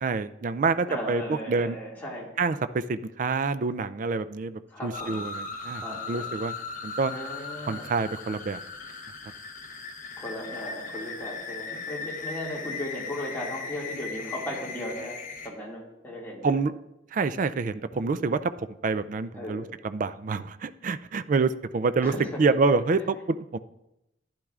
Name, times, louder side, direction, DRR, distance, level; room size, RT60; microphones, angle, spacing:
voice 1, 0.0-1.8 2.4-6.5 6.8-7.1 7.7-8.6 16.4-16.7 17.1-22.1 22.4-23.6, right 4 dB, 40° right, 12 dB, 0.3 m, -27 dB
voice 2, 0.9-2.3 4.7-5.2 5.8-6.3 7.1-7.9 10.2-16.6 19.3-19.7 22.0-22.4 22.7-22.8, left 1 dB, 10° left, -5 dB, 2.0 m, -36 dB
sound 1, 4.9-15.5, left 4 dB, 40° left, 0.9 m, -38 dB
11.5 x 10.5 x 2.4 m, 0.90 s
head